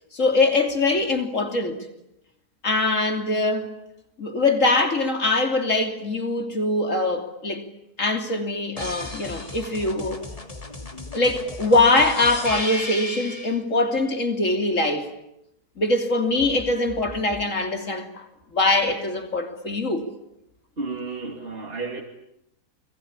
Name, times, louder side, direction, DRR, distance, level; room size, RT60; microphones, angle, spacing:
voice 1, 0.1-1.9 2.6-3.7 4.2-7.6 8.0-10.2 11.1-15.1 15.8-18.3 18.5-20.0, left 2 dB, 50° left, 3.4 m, -22 dB
sound 1, 8.8-13.6 16.4-17.4, left 2 dB, 20° left, 2.7 m, -35 dB
voice 2, 20.8-22.0, right 3 dB, 35° right, 3.1 m, -32 dB
30.0 x 21.5 x 8.9 m
omnidirectional pair, 1.8 m